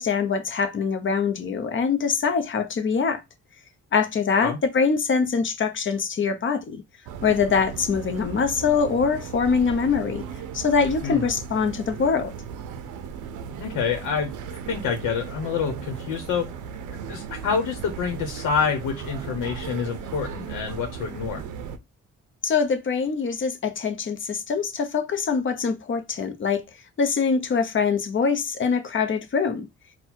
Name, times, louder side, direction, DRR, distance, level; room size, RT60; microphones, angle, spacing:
voice 1, 0.0-3.2 3.9-6.8 7.2-10.3 10.5-12.3 22.4-26.6 27.0-29.7, left 5 dB, 40° left, 0.9 m, -23 dB
sound 1, 7.1-21.8, right 7 dB, 90° right, 0.6 m, -36 dB
voice 2, 13.6-14.3 14.7-16.5 17.1-21.4, left 6 dB, 80° left, 1.1 m, -27 dB
4.1 x 2.3 x 4.4 m
cardioid pair, 90°, 30 cm